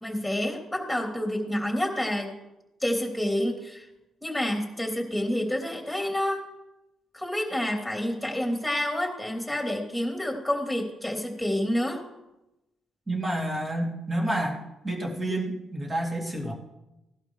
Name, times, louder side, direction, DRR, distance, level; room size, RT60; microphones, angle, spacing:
voice 1, 0.0-2.3 2.8-3.8 4.2-6.4 7.1-12.0, left 1 dB, ahead, 0 dB, 3.1 m, -28 dB
voice 2, 13.1-14.6 14.8-16.5, right 1 dB, 25° right, -1 dB, 2.9 m, -29 dB
17.0 x 11.5 x 3.2 m, 0.96 s
cardioid pair, 90°, 0 cm